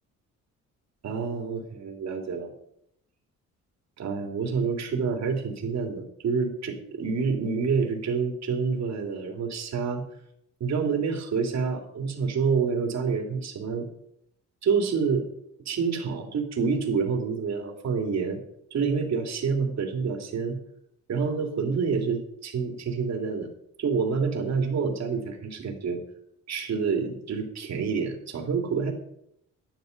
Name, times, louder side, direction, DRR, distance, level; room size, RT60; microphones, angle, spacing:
voice 1, 1.0-2.5 4.0-10.0 10.6-13.9 14.6-15.3 15.6-18.4 18.7-20.6 21.1-23.5 23.8-26.0 26.5-28.9, right 5 dB, 60° right, 3 dB, 3.0 m, -27 dB
11.5 x 10.5 x 5.3 m, 0.76 s
cardioid pair, 90°, 30 cm